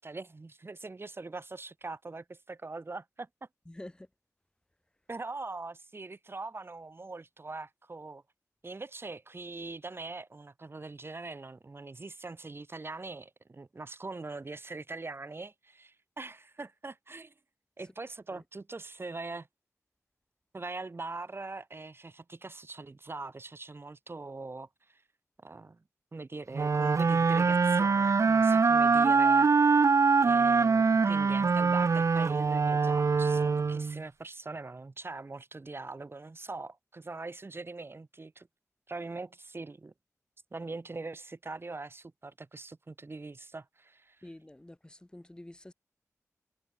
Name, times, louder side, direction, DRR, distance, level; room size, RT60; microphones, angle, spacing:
voice 1, 0.0-3.3 5.1-8.2 8.6-17.3 17.8-19.5 20.5-25.0 25.4-25.8 26.1-29.8 30.2-38.5 38.9-39.9 40.5-44.3, right 3 dB, 45° right, 3.3 m, -42 dB
voice 2, 3.7-4.1 18.3-18.4 44.2-45.7, left 1 dB, 15° left, 4.1 m, -48 dB
sound 1, 26.5-34.0, right 4 dB, 60° right, 0.8 m, -24 dB
wide cardioid pair, 90°, 6 cm